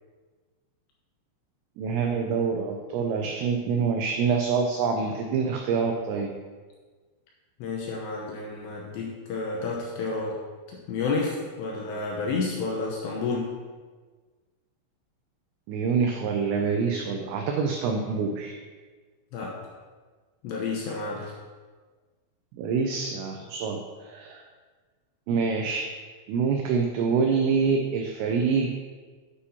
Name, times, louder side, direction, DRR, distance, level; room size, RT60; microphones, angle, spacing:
voice 1, 1.8-6.3 15.7-18.5 22.6-24.4 25.3-25.9 26.3-28.7, right 5 dB, 90° right, 2 dB, 2.5 m, -26 dB
voice 2, 7.6-10.4 10.7-13.5 19.3-19.7 20.4-21.3, left 4 dB, 75° left, -2 dB, 2.6 m, -30 dB
9.7 x 8.7 x 2.8 m, 1.4 s
omnidirectional pair, 5.9 m